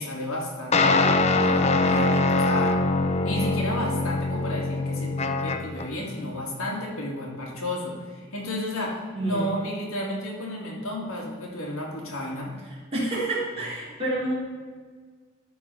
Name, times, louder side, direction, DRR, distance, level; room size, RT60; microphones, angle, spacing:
voice 1, 0.0-2.8 3.2-12.6, left 1 dB, 85° left, -3 dB, 2.7 m, -32 dB
sound 1, 0.7-5.9, left 2 dB, 30° left, 0.5 m, -23 dB
voice 2, 9.1-9.5 12.9-14.3, right 1 dB, 30° right, -6 dB, 3.3 m, -28 dB
13.0 x 4.7 x 5.8 m, 1.5 s
head